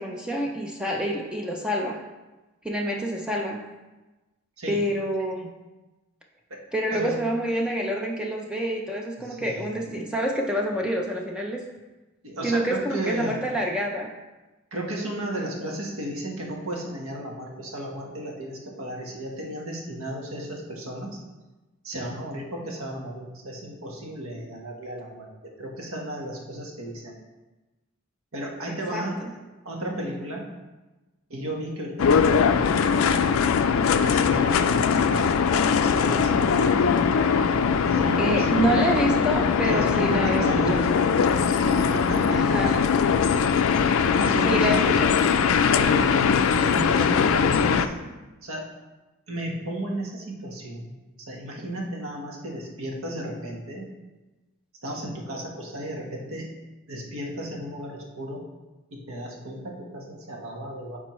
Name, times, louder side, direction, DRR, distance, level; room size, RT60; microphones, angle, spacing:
voice 1, 0.0-2.0 2.6-3.6 4.7-5.5 6.7-11.6 12.4-14.1 28.9-29.3 38.2-40.4 40.7-40.8 42.3-42.8 44.2-45.2, equal, 5° right, 0 dB, 0.4 m, -27 dB
voice 2, 9.2-10.0 12.2-13.5 14.7-21.2 21.8-25.3 25.6-27.2 28.3-29.2 29.6-30.4 31.3-33.0 34.0-35.4 35.6-37.1 37.8-38.9 39.6-40.9 41.5-42.9 44.0-45.0 45.8-47.9 48.4-48.7 49.3-50.9 51.2-53.9 54.8-56.5 56.9-58.4 58.9-61.0, right 1 dB, 70° right, 0 dB, 1.2 m, -33 dB
sound 1, 32.0-47.9, left 6 dB, 70° left, 0.3 m, -21 dB
9.0 x 4.3 x 3.1 m, 1.1 s
head